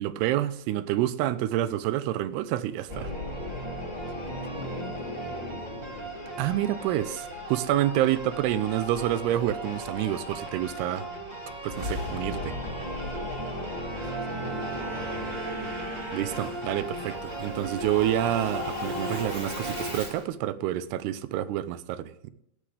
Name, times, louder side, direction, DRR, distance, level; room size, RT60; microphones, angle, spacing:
voice 1, 0.0-3.1 6.4-11.1 11.6-12.5 16.1-22.3, right 13 dB, 90° right, 2.7 m, -28 dB
Singing / Musical instrument, 2.9-20.2, equal, 30° right, 0.7 m, -35 dB
voice 2, 4.1-6.1 13.6-15.8, left 10 dB, 80° left, 2.3 m, -46 dB
Car passing by / Engine, 13.0-18.8, right 4 dB, 60° right, 3.4 m, -53 dB
Bowed string instrument, 13.8-17.0, right 4 dB, 10° left, 0.7 m, -40 dB
15.5 x 10.0 x 3.4 m
omnidirectional pair, 4.6 m